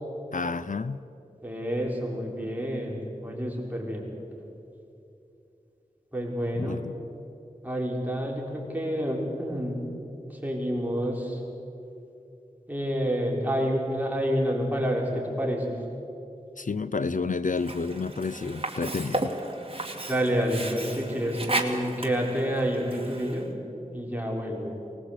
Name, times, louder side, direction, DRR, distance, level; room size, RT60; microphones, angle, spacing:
voice 1, 0.3-1.0 6.5-6.9 16.6-19.3, left 4 dB, 65° left, 15 dB, 0.6 m, -30 dB
voice 2, 1.4-4.1 6.1-6.8 7.6-9.8 10.3-11.4 12.7-15.8 20.1-23.5 23.9-24.7, equal, 10° right, -2 dB, 5.1 m, -28 dB
Sink (filling or washing), 17.6-23.5, right 2 dB, 40° right, 2.4 m, -34 dB
24.0 x 20.0 x 8.4 m, 2.8 s
wide cardioid pair, 50°, 15 cm